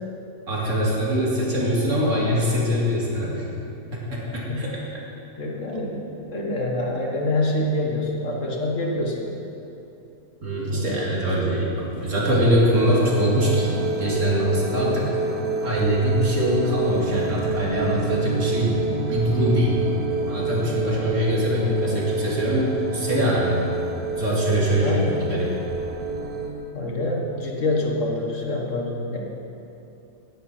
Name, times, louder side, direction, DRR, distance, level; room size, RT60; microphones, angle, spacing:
voice 1, 0.5-3.4 4.3-4.7 10.4-15.1 15.6-19.8 20.3-23.6 24.2-24.9 25.2-25.6, equal, 55° right, -5 dB, 2.8 m, -23 dB
voice 2, 5.4-6.0 6.3-9.3 10.7-11.3 24.6-25.2 26.7-29.2, left 1 dB, 55° left, -1 dB, 2.0 m, -26 dB
sound 1, 12.7-26.5, right 3 dB, 75° right, 1.9 m, -28 dB
17.0 x 10.0 x 4.4 m, 2.9 s
omnidirectional pair, 1.6 m